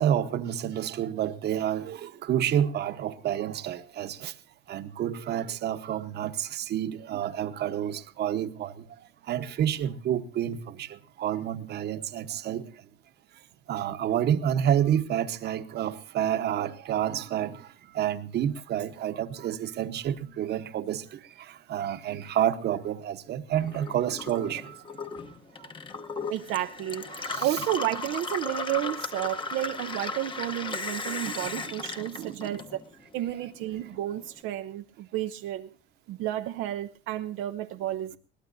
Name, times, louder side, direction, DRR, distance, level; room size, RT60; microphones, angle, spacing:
voice 1, 0.0-4.3 4.7-9.0 9.2-12.9 13.7-25.1 25.6-25.7 27.1-27.6 31.1-31.3 31.6-31.7 32.2-32.5, right 10 dB, 55° right, 1.0 m, -29 dB
Gurgling / Water tap faucet / Sink (filling or washing), 23.6-33.1 33.4-34.3, left 3 dB, 25° left, 1.0 m, -36 dB
voice 2, 26.3-27.1 27.4-32.8 33.1-35.7 36.1-38.2, right 13 dB, 85° right, 0.6 m, -31 dB
21.5 x 18.0 x 2.6 m
cardioid pair, 135°, 20 cm